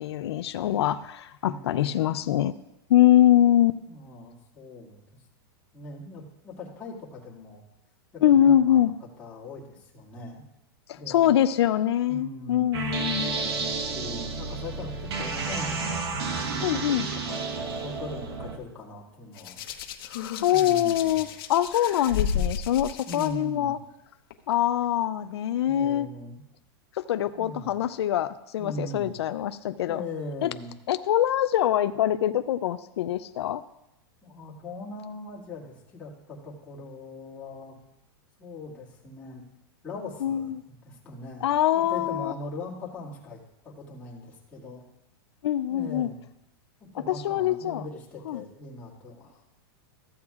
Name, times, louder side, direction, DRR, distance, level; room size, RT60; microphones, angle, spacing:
voice 1, 0.0-2.5 2.9-3.8 8.2-8.9 10.9-13.4 16.6-17.1 20.4-23.8 24.5-26.1 27.0-30.0 30.4-30.5 30.9-33.6 40.2-40.6 41.4-42.3 45.4-46.1 47.1-47.9 48.3-48.4, left 11 dB, 85° left, 11 dB, 0.4 m, -23 dB
voice 2, 1.5-2.3 3.9-5.0 5.7-7.6 8.1-8.9 9.2-10.4 10.9-11.3 12.1-13.0 13.6-16.0 16.5-19.6 20.5-21.3 23.1-23.7 25.6-26.4 27.3-27.7 28.6-29.1 29.9-30.7 34.2-37.8 38.4-39.4 39.8-44.8 45.7-46.2 46.9-49.4, left 2 dB, 10° left, -7 dB, 2.0 m, -40 dB
sound 1, 12.7-18.6, right 4 dB, 75° right, 1.2 m, -31 dB
Hands, 19.4-23.3 24.3-24.5, left 8 dB, 60° left, 1.0 m, -32 dB
14.5 x 8.6 x 2.4 m, 0.88 s
supercardioid pair, 160°, 13 cm